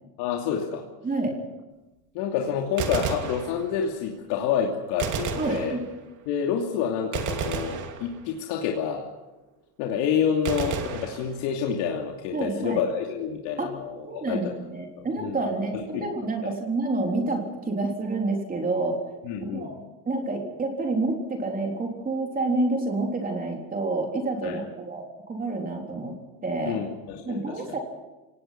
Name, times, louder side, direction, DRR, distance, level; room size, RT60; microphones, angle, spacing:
voice 1, 0.2-0.8 2.1-5.8 6.3-9.0 9.8-14.4 15.0-15.3 15.7-16.1 19.2-19.7 24.4-24.6 26.6-27.8, left 7 dB, 60° left, 0 dB, 2.8 m, -28 dB
voice 2, 1.0-1.3 5.4-5.8 12.3-12.8 13.6-13.7 14.0-19.0 19.5-19.7 20.1-26.2 26.4-26.8 27.3-27.8, right 2 dB, 20° right, 2 dB, 3.7 m, -28 dB
Gunshot gunfire, 2.6-4.0 5.0-6.2 7.1-8.6 10.5-11.8, right 7 dB, 40° right, 2.8 m, -32 dB
28.0 x 18.0 x 6.0 m, 1.1 s
supercardioid pair, 130°, 47 cm